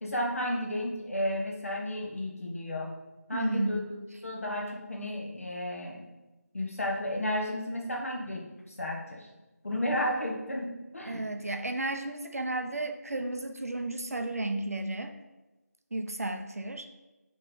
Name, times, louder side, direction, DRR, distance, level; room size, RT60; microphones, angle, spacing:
voice 1, 0.0-2.9 3.3-3.9 4.2-6.0 6.5-9.3 9.6-11.2, left 1 dB, 55° left, -1 dB, 0.9 m, -33 dB
voice 2, 3.3-3.8 11.0-15.1 15.9-16.9, right 2 dB, 60° right, 6 dB, 0.4 m, -33 dB
4.3 x 3.1 x 3.7 m, 1.1 s
figure-of-eight pair, 170°, 9 cm